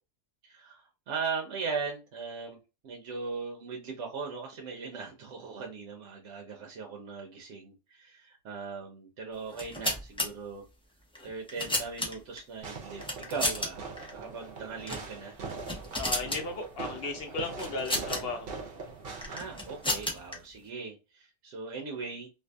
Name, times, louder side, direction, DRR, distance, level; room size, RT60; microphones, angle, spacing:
voice 1, 0.4-2.6 2.8-10.6 11.2-13.0 13.3-13.8 14.1-15.4 19.3-22.3, right 5 dB, 80° right, 1 dB, 1.0 m, -39 dB
sound 1, 9.5-10.3 11.1-12.4 13.0-13.7 14.0-14.1 14.8-15.1 15.4-16.4 17.6-18.2 19.2-20.3, left 1 dB, 5° left, 0.4 m, -32 dB
Fireworks, 12.6-20.0, right 4 dB, 60° right, 0.8 m, -42 dB
voice 2, 16.0-18.5, left 3 dB, 60° left, 3 dB, 1.0 m, -35 dB
2.6 x 2.5 x 2.2 m, 0.28 s
omnidirectional pair, 1.2 m